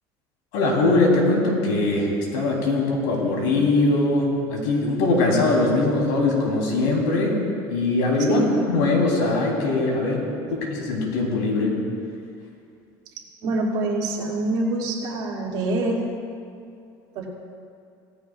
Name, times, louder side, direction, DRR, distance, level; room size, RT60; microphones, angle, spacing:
voice 1, 0.5-7.4 7.7-10.2 10.5-11.8, left 2 dB, 85° left, -1 dB, 3.4 m, -21 dB
voice 2, 13.4-16.0 17.1-17.3, right 2 dB, 55° right, -3 dB, 2.5 m, -25 dB
17.5 x 15.0 x 2.4 m, 2.4 s
cardioid pair, 150°, 9 cm